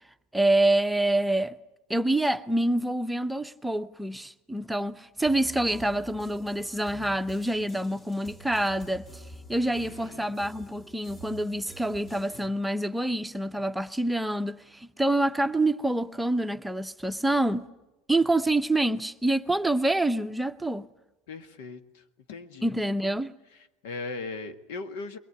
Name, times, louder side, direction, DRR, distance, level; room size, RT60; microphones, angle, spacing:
voice 1, 0.3-1.6 1.9-9.2 9.5-17.7 18.1-20.9 22.6-23.3, right 1 dB, 5° right, 0.8 m, -26 dB
sound 1, 5.2-12.5, right 1 dB, 25° left, 2.5 m, -48 dB
voice 2, 9.6-10.4 21.3-22.0 22.3-22.7 23.8-25.2, left 3 dB, 80° left, 1.7 m, -39 dB
22.5 x 19.0 x 9.7 m
supercardioid pair, 120°, 0 cm